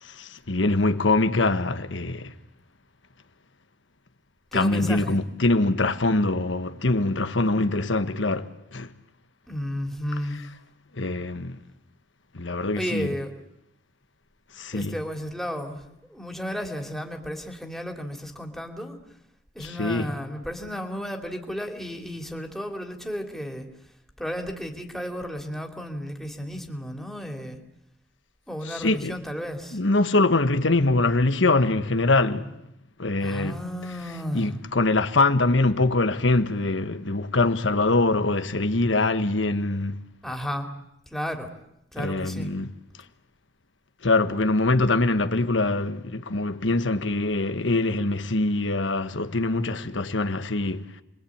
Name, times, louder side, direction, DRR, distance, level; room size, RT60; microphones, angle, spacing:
voice 1, 0.0-2.3 4.5-8.9 11.0-11.6 12.3-13.1 14.6-15.0 19.6-20.1 28.6-29.2 29.7-32.6 33.0-33.6 34.3-40.0 42.0-42.7 44.0-51.0, left 2 dB, 90° left, 1.5 m, -23 dB
voice 2, 4.5-5.2 9.5-10.4 12.8-13.3 14.7-15.8 16.1-19.0 19.5-23.7 24.2-27.6 28.5-29.8 33.2-34.5 40.2-40.7 41.1-41.5 41.9-42.5, equal, ahead, 3.0 m, -33 dB
30.0 x 23.0 x 8.7 m
head